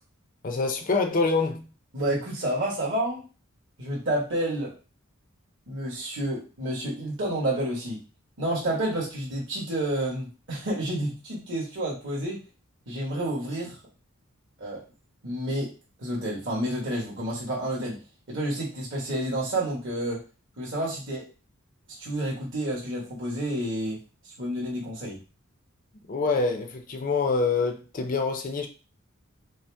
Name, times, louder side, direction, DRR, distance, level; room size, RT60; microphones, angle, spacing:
voice 1, 0.4-1.7 26.1-28.7, left 4 dB, 40° left, 0.6 m, -26 dB
voice 2, 1.9-3.3 3.8-4.7 5.7-8.0 8.4-12.4 12.9-13.8 14.6-14.8 15.2-18.0 18.3-20.2 20.6-21.3 21.9-25.2, right 1 dB, 60° right, 1.6 m, -30 dB
5.2 x 2.1 x 3.4 m
head